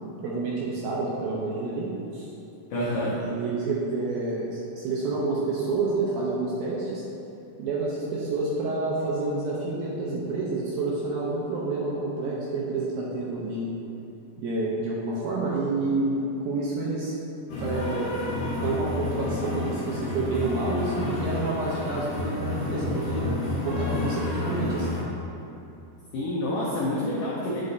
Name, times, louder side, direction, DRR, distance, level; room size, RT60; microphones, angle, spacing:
voice 1, 0.2-2.3 2.8-2.9 3.2-7.0 7.6-13.7 14.4-17.1 17.6-18.1 18.5-23.3 23.6-25.0, right 3 dB, 80° right, -5 dB, 2.2 m, -29 dB
voice 2, 2.7-3.3 26.1-27.6, left 1 dB, 90° left, -7 dB, 1.8 m, -28 dB
sound 1, 17.5-25.0, left 2 dB, 60° left, 1.9 m, -30 dB
9.4 x 5.4 x 2.6 m, 2.8 s
omnidirectional pair, 4.9 m